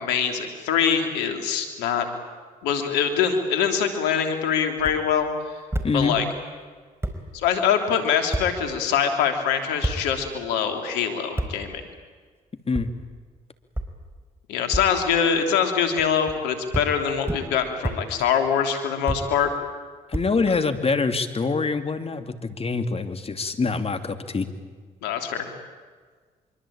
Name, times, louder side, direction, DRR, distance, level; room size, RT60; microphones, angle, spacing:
voice 1, 0.0-2.1 2.6-5.3 5.9-6.2 7.3-11.8 14.5-19.5 25.0-25.5, left 7 dB, 85° left, 6 dB, 3.3 m, -23 dB
sound 1, 4.8-5.0 5.7-5.9 6.7-6.8 7.0-7.2 8.3-8.5 9.8-10.0 11.4-11.5 12.7-12.9 13.7-13.9 14.7-14.9 16.0-16.4 16.7-16.9 17.3-17.4 17.8-18.0 19.1-19.2 20.1-20.8, right 1 dB, 15° right, 4.7 m, -27 dB
voice 2, 5.8-6.2 12.7-12.9 20.1-24.5, left 4 dB, 35° left, 8 dB, 2.8 m, -25 dB
25.0 x 24.0 x 8.9 m, 1.5 s
supercardioid pair, 55°, 17 cm